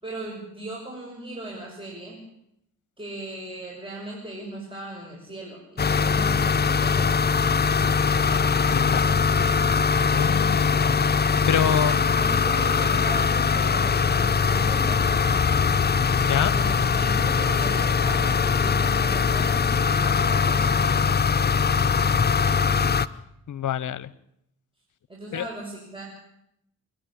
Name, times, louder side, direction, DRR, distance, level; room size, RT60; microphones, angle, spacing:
voice 1, 0.0-2.2 3.0-9.2 11.7-15.1 16.5-22.1 25.1-26.0, right 2 dB, 15° right, -3 dB, 6.9 m, -38 dB
sound 1, 5.8-23.1, left 6 dB, 25° left, 0.9 m, -21 dB
voice 2, 8.7-9.2 10.0-10.9 11.5-11.9 16.3-16.5 23.5-24.1 25.3-25.5, left 9 dB, 55° left, 20 dB, 1.1 m, -26 dB
28.0 x 10.5 x 10.0 m, 0.79 s
supercardioid pair, 65°, 37 cm